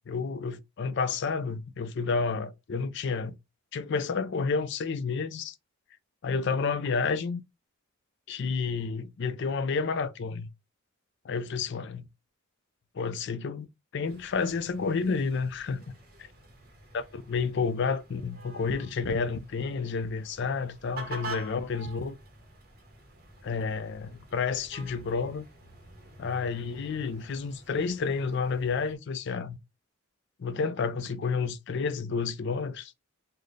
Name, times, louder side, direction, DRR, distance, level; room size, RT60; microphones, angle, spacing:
voice 1, 0.1-3.4 3.7-5.5 6.2-7.4 8.3-10.5 11.2-12.1 12.9-13.7 13.9-15.8 16.9-22.2 23.4-25.5 26.2-29.6 30.4-32.9, left 5 dB, 55° left, 0.4 m, -30 dB
sound 1, 14.0-29.0, right 2 dB, 45° right, 1.0 m, -47 dB
3.9 x 2.1 x 3.2 m
head